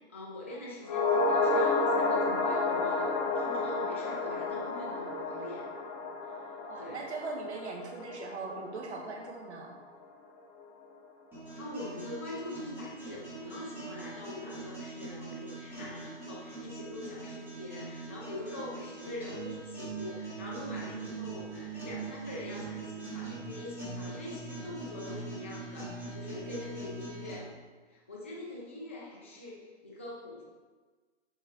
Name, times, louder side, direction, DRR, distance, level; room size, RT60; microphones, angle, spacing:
voice 1, 0.1-5.6 6.3-6.4 6.8-7.0 11.6-27.5 27.9-30.5, left 1 dB, 10° left, -5 dB, 0.3 m, -43 dB
sound 1, 0.8-9.3 9.6-9.7, left 3 dB, 30° left, 0.8 m, -31 dB
voice 2, 6.6-9.7, right 3 dB, 70° right, 0 dB, 1.6 m, -40 dB
sound 2, 11.3-27.3, right 3 dB, 5° right, 2.3 m, -42 dB
7.2 x 5.3 x 4.1 m, 1.4 s
hypercardioid pair, 160°, 35 cm